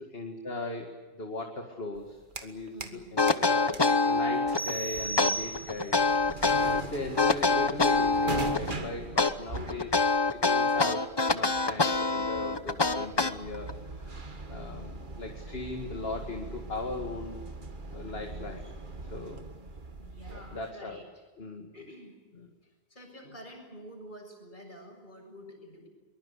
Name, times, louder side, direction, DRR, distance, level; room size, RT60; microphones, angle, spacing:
voice 1, 0.0-6.1 6.7-9.9 10.3-13.7 14.0-14.1 14.5-17.4 17.9-18.6 19.1-19.4 20.3-21.0 21.4-21.7 22.3-22.5, left 2 dB, 70° left, 3 dB, 2.4 m, -38 dB
sound 1, 1.9-3.0 3.3-20.7, right 3 dB, 50° right, 1.9 m, -42 dB
voice 2, 2.7-3.2 9.2-9.5 20.0-21.0 21.7-22.2 22.9-25.9, equal, 50° left, 2 dB, 7.3 m, -48 dB
sound 2, 3.2-4.7 5.2-6.8 7.2-8.7 9.2-13.7, left 3 dB, 25° left, 1.0 m, -25 dB
sound 3, 4.5-6.1, right 3 dB, 25° right, 0.7 m, -34 dB
23.5 x 21.0 x 8.3 m, 1.3 s
omnidirectional pair, 1.1 m